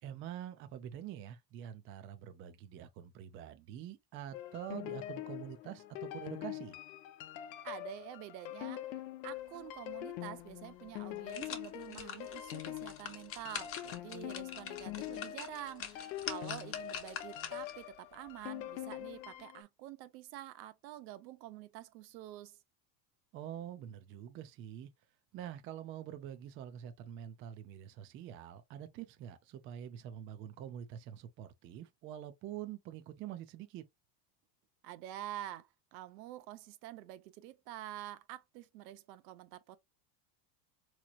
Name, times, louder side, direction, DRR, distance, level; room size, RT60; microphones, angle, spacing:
voice 1, 0.0-6.8 23.3-24.9 25.3-33.8, right 10 dB, 30° right, 0.3 m, -46 dB
sound 1, 4.3-19.6, left 14 dB, 90° left, 0.7 m, -44 dB
voice 2, 7.6-22.6 34.8-39.8, right 13 dB, 85° right, 0.7 m, -48 dB
sound 2, 10.4-10.5 11.0-17.8 18.3-18.4, left 7 dB, 25° left, 0.8 m, -45 dB
3.9 x 3.0 x 2.3 m
supercardioid pair, 130°, 50 cm